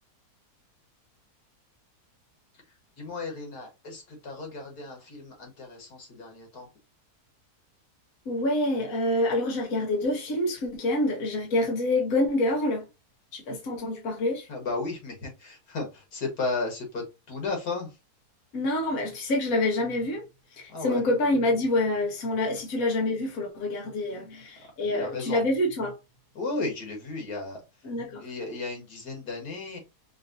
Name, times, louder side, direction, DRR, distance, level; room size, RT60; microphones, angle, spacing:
voice 1, 3.0-6.7 14.5-17.9 20.7-21.0 24.9-25.4 26.4-27.6 28.2-29.8, left 3 dB, 85° left, 2.3 m, -34 dB
voice 2, 8.3-12.8 13.3-14.5 18.5-20.2 20.6-26.0 27.8-28.2, left 1 dB, 60° left, 1.5 m, -27 dB
5.6 x 2.7 x 2.7 m
omnidirectional pair, 1.7 m